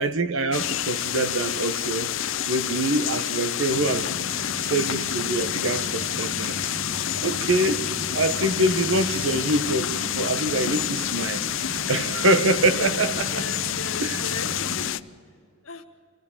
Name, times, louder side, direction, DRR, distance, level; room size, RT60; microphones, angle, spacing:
voice 1, 0.0-6.6 7.0-7.9 8.1-13.4 14.0-14.2, right 2 dB, 70° right, 1.0 m, -25 dB
sound 1, 0.5-15.0, left 11 dB, 70° left, 0.6 m, -28 dB
sound 2, 3.7-14.9, right 1 dB, 55° right, 1.7 m, -37 dB
voice 2, 12.7-14.9 15.6-15.8, left 3 dB, 85° left, 1.8 m, -38 dB
25.5 x 16.5 x 7.2 m
head